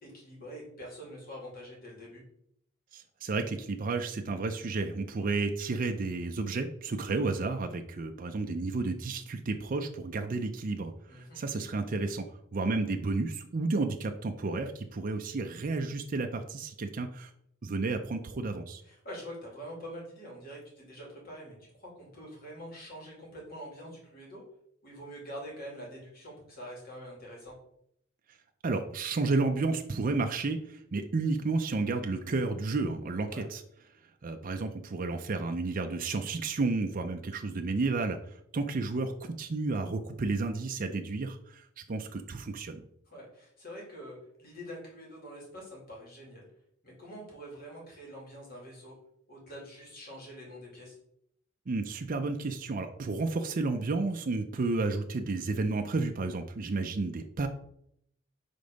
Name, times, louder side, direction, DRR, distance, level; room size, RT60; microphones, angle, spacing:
voice 1, 0.0-2.2 5.2-5.4 11.1-11.4 18.8-24.4 24.8-27.5 33.2-33.5 43.0-46.4 46.8-48.9 49.3-51.0, equal, 50° left, -3 dB, 2.5 m, -45 dB
voice 2, 2.9-12.2 12.5-17.3 17.6-18.8 28.6-33.6 34.2-38.2 38.5-42.8 51.7-57.5, right 3 dB, 45° right, 5 dB, 0.5 m, -31 dB
5.2 x 3.8 x 5.2 m, 0.73 s
head